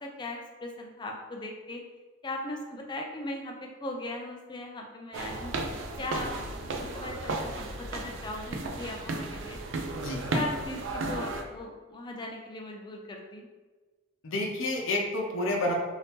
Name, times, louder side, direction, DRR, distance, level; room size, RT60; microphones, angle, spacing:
voice 1, 0.0-1.8 2.2-5.5 6.0-6.4 6.8-9.6 10.0-13.5, left 2 dB, 20° left, 1 dB, 0.3 m, -38 dB
sound 1, 5.1-11.4, right 2 dB, 65° right, 0.4 m, -34 dB
voice 2, 14.2-15.7, left 1 dB, 75° left, -1 dB, 0.7 m, -29 dB
2.7 x 2.7 x 3.4 m, 1.3 s
head